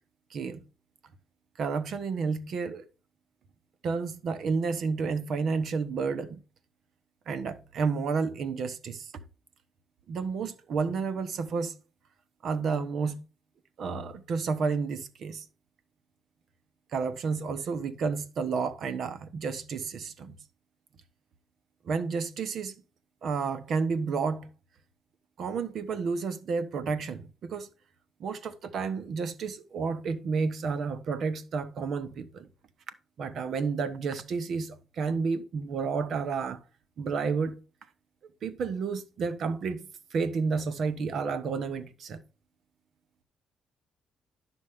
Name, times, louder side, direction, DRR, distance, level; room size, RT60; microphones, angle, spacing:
voice 1, 0.3-0.6 1.6-2.8 3.8-6.4 7.3-9.1 10.1-11.7 12.4-13.2 13.8-15.4 16.9-20.4 21.8-22.7 23.2-24.5 25.4-27.7 28.2-32.5 33.2-36.6 37.0-37.6 38.4-39.8 40.1-42.2, right 5 dB, 65° right, 1.1 m, -31 dB
11.0 x 6.2 x 3.6 m
cardioid pair, 90°, 0 cm